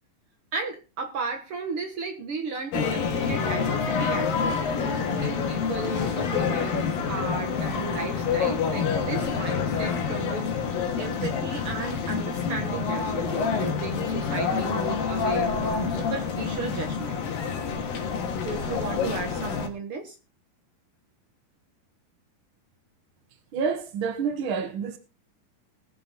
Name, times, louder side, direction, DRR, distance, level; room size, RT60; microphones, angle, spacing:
voice 1, 0.5-4.6 5.2-10.5 11.0-17.2 18.4-20.2, right 4 dB, 55° right, 1.6 m, -34 dB
sound 1, 2.7-19.7, left 6 dB, 80° left, 3.4 m, -27 dB
voice 2, 23.5-25.0, right 6 dB, 75° right, 1.1 m, -28 dB
20.5 x 6.9 x 3.7 m
omnidirectional pair, 4.0 m